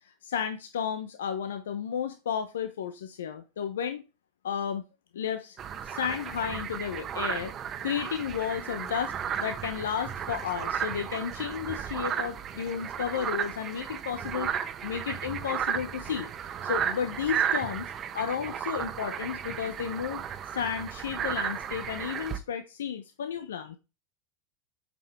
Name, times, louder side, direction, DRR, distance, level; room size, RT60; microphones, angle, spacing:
voice 1, 0.2-4.0 4.4-4.8 5.1-5.6 5.8-7.5 7.8-9.1 9.4-14.5 14.8-16.3 16.6-20.2 20.5-23.8, left 8 dB, 85° left, 9 dB, 0.8 m, -33 dB
sound 1, 5.6-22.4, right 8 dB, 35° right, 1.0 m, -34 dB
8.0 x 5.4 x 4.3 m, 0.28 s
hypercardioid pair, 100°, 0 cm